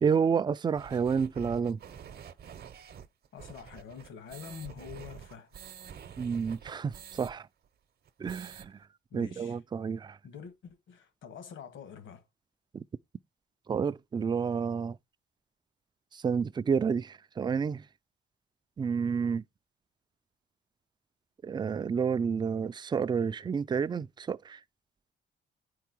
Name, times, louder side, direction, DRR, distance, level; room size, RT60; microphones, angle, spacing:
voice 1, 0.0-1.8 6.2-7.5 8.2-8.7 9.1-10.2 12.7-12.8 13.7-15.0 16.1-17.8 18.8-19.4 21.4-24.6, right 6 dB, 20° right, 0.4 m, -30 dB
sound 1, 0.7-7.3 7.6-7.7 8.0-8.7, right 8 dB, 50° right, 0.8 m, -48 dB
voice 2, 3.3-5.6 9.1-9.6 10.2-12.2, left 7 dB, 75° left, 1.7 m, -46 dB
9.1 x 4.7 x 4.5 m
cardioid pair, 90°, 20 cm